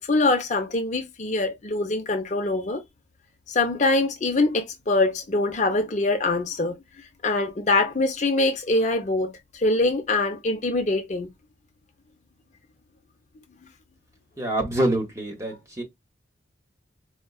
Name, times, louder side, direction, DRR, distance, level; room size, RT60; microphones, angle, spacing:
voice 1, 0.0-2.8 3.5-6.7 7.2-11.3, left 2 dB, 35° left, 0.5 m, -24 dB
voice 2, 14.4-15.8, right 1 dB, 15° right, 1.0 m, -26 dB
4.4 x 2.2 x 2.2 m
head